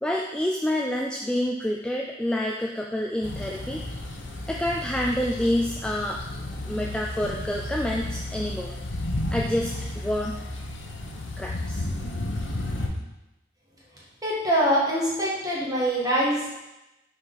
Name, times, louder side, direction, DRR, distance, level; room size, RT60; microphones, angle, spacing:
voice 1, 0.0-3.8 4.5-6.2 6.7-8.7 9.3-10.3 11.4-11.8, left 1 dB, 5° left, -1 dB, 0.3 m, -28 dB
sound 1, 3.2-12.9, left 1 dB, 65° left, 0.9 m, -33 dB
voice 2, 14.2-16.5, equal, 20° right, -6 dB, 1.6 m, -24 dB
5.6 x 4.2 x 4.0 m, 0.95 s
head